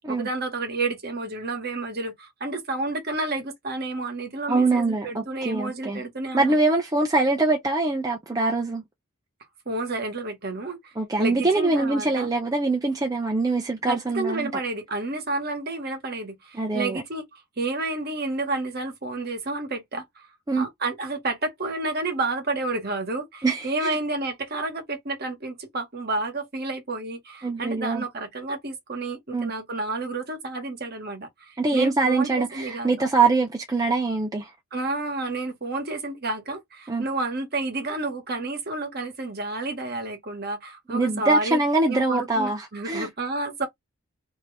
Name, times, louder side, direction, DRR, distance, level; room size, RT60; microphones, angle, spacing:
voice 1, 0.1-6.6 9.7-10.9 11.2-12.3 13.9-20.3 20.6-32.9 34.7-41.6 41.9-43.7, right 2 dB, 45° right, 1.1 m, -30 dB
voice 2, 4.5-6.0 6.3-8.8 11.0-14.6 16.5-17.0 20.5-20.7 23.4-24.0 27.4-28.0 29.3-29.5 31.6-34.5 36.9-37.1 40.9-43.1, right 3 dB, 15° right, 0.4 m, -23 dB
2.9 x 2.7 x 3.2 m
head